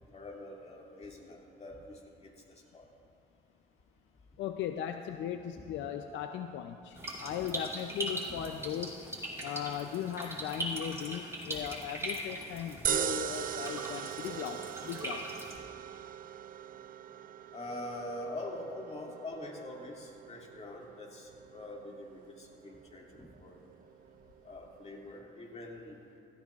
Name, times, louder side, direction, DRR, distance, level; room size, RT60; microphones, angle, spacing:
voice 1, 0.1-2.9 7.3-7.4 8.3-8.4 11.5-11.6 12.8-12.9 17.5-23.6 24.4-26.0, left 1 dB, 35° left, -1 dB, 2.4 m, -44 dB
voice 2, 4.4-9.0 9.4-15.2, left 9 dB, 80° left, 7 dB, 0.5 m, -38 dB
sound 1, 7.0-15.6, right 1 dB, 15° right, 2.6 m, -40 dB
sound 2, 12.8-25.2, right 10 dB, 45° right, 0.4 m, -41 dB
16.5 x 13.0 x 2.4 m, 2.8 s
cardioid pair, 75°, 19 cm